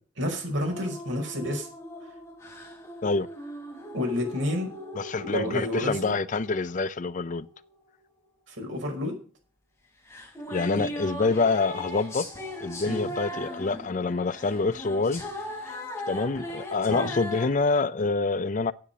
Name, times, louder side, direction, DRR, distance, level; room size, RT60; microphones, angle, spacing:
voice 1, 0.2-1.7 3.9-4.7 5.2-6.2 8.5-9.2 10.8-10.9 12.8-13.1 16.9-17.1, left 1 dB, 70° right, 5.5 m, -30 dB
sound 1, 0.6-7.6 10.1-17.5, left 1 dB, 15° left, 3.9 m, -39 dB
voice 2, 5.0-7.5 10.5-12.3 12.6-15.2 16.1-18.7, left 3 dB, 40° left, 0.5 m, -26 dB
9.7 x 8.5 x 8.0 m
head